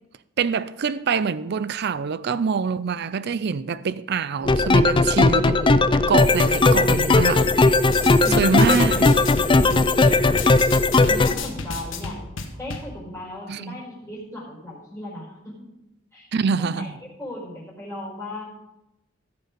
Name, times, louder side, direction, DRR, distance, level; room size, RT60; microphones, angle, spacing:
voice 1, 0.4-7.5 8.4-9.1 13.5-13.8 16.3-16.9, right 5 dB, 55° right, 0.5 m, -25 dB
sound 1, 4.4-11.3, left 3 dB, 25° left, 0.4 m, -17 dB
sound 2, 7.9-12.9, left 4 dB, 75° left, 1.3 m, -34 dB
voice 2, 8.2-8.9 11.0-12.2 12.6-15.5 16.1-16.3 16.6-16.9 17.2-18.4, left 1 dB, 10° left, 4.6 m, -35 dB
14.0 x 6.8 x 5.2 m
head